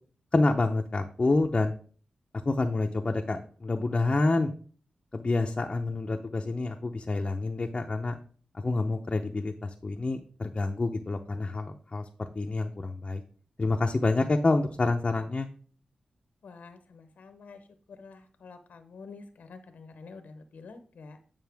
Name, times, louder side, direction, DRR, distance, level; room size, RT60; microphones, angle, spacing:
voice 1, 0.3-1.7 2.4-4.5 5.1-8.2 8.6-12.0 12.3-13.2 13.6-15.5, left 2 dB, 35° left, 2 dB, 0.7 m, -27 dB
voice 2, 16.4-21.2, left 4 dB, 80° left, 9 dB, 0.8 m, -48 dB
9.3 x 5.4 x 3.5 m, 0.43 s
cardioid pair, 75°, 3 cm